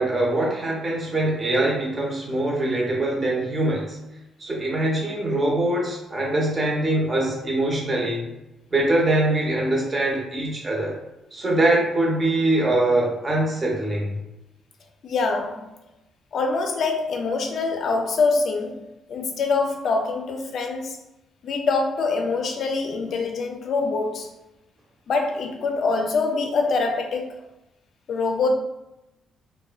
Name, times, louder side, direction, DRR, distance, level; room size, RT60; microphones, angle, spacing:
voice 1, 0.0-4.0 4.4-8.3 8.7-11.0 11.3-14.1, right 1 dB, 30° right, -3 dB, 0.8 m, -23 dB
voice 2, 15.0-15.7 16.3-21.0 21.4-24.3 25.1-27.4 28.1-28.5, left 4 dB, 65° left, 4 dB, 0.4 m, -24 dB
2.6 x 2.1 x 2.3 m, 0.94 s
cardioid pair, 90°, 0 cm